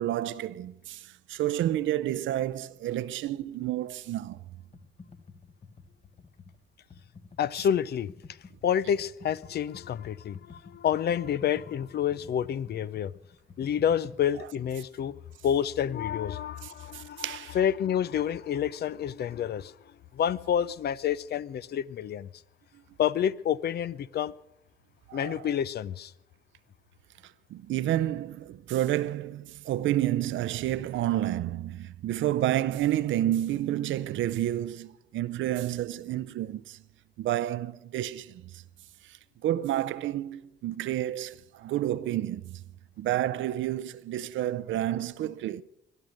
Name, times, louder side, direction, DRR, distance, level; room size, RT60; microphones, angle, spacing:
voice 1, 0.0-4.4 16.6-17.6 25.1-25.5 27.2-36.8 37.2-38.6 39.0-42.6 43.0-45.6, right 13 dB, 75° right, 0.6 m, -30 dB
Computer keyboard, 4.7-14.2, left 4 dB, 30° left, 1.1 m, -51 dB
voice 2, 7.4-8.1 8.6-13.1 13.6-15.2 15.4-19.7 20.1-22.3 23.0-24.3 25.1-26.1, left 9 dB, 55° left, 0.5 m, -28 dB
20.5 x 11.0 x 6.3 m
cardioid pair, 90°, 20 cm